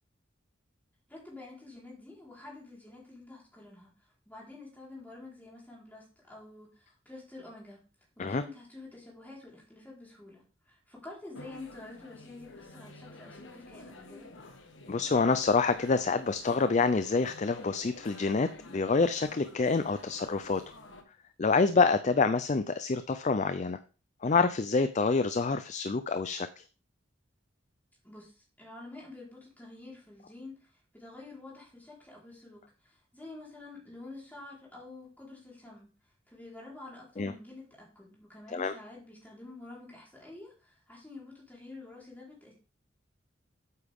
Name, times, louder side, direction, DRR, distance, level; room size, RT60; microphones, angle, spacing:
voice 1, 1.1-7.8 8.2-14.3 28.0-35.9 36.3-42.5, left 2 dB, 10° left, -4 dB, 4.2 m, -48 dB
sound 1, 11.3-21.0, left 2 dB, 75° left, 1.4 m, -50 dB
voice 2, 14.9-20.6 21.4-23.8 24.2-26.6 37.2-37.3 38.5-38.7, left 4 dB, 35° left, 11 dB, 0.4 m, -27 dB
8.7 x 8.5 x 3.6 m, 0.36 s
head